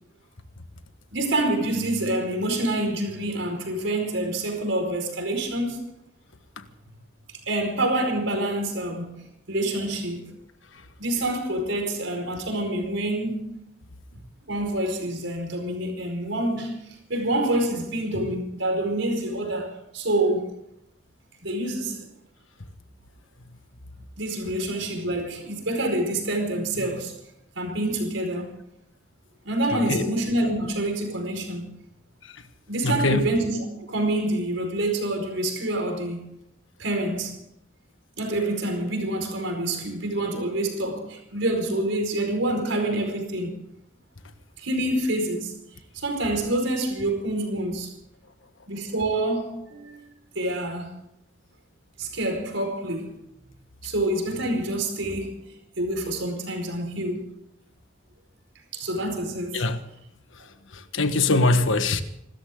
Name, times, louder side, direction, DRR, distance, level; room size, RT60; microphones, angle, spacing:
voice 1, 1.1-5.8 7.5-10.4 11.0-13.5 14.5-16.8 17.1-20.5 21.4-22.1 24.2-27.1 27.5-28.6 29.4-31.8 32.7-36.4 36.8-37.4 38.2-43.6 44.6-45.5 45.9-47.9 48.7-50.9 52.0-53.2 53.8-55.4 55.8-57.2 58.7-59.7, right 1 dB, 80° right, 4.9 m, -27 dB
voice 2, 29.7-30.0 32.8-33.3 59.5-59.8 60.7-62.0, left 3 dB, 90° left, 1.5 m, -22 dB
27.5 x 13.5 x 3.8 m
head